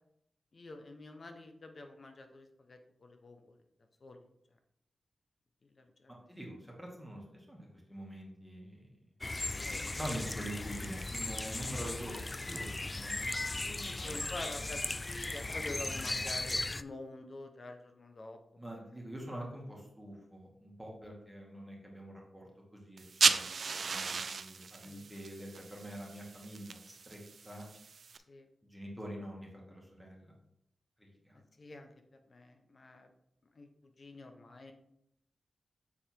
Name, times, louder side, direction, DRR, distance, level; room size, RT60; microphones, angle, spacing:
voice 1, 0.5-3.6 4.0-4.2 5.7-6.3 9.4-10.0 10.4-10.7 13.6-18.6 24.8-25.0 28.3-28.5 31.3-33.1 33.5-33.7 34.0-34.7, left 2 dB, 50° left, 5 dB, 1.0 m, -48 dB
voice 2, 6.1-8.9 9.9-12.2 12.4-14.3 16.0-16.2 18.6-27.7 28.7-30.3 31.0-31.4, equal, ahead, -3 dB, 2.2 m, -45 dB
sound 1, 9.2-16.8, left 2 dB, 30° left, 0.3 m, -37 dB
sound 2, 23.0-28.2, right 5 dB, 65° right, 0.4 m, -35 dB
7.2 x 4.3 x 4.6 m, 0.78 s
cardioid pair, 65°, 0 cm